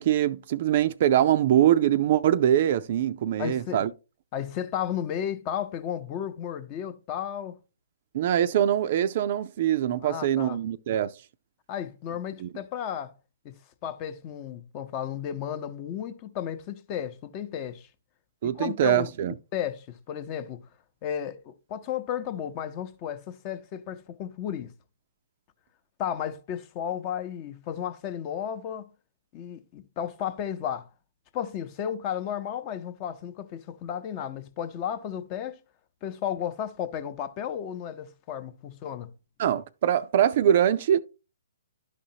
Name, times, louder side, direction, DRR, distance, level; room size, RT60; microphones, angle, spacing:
voice 1, 0.0-3.9 8.1-11.1 12.4-12.5 18.4-19.3 39.4-41.0, right 11 dB, 50° right, 0.4 m, -23 dB
voice 2, 3.4-3.9 4.3-7.6 9.9-10.6 11.7-13.1 13.4-17.9 18.4-19.1 19.5-20.7 21.0-24.7 26.0-28.8 29.3-30.9 31.3-35.6 36.0-39.1, left 9 dB, 35° left, 0.7 m, -33 dB
12.0 x 5.0 x 2.8 m
hypercardioid pair, 130°, 0 cm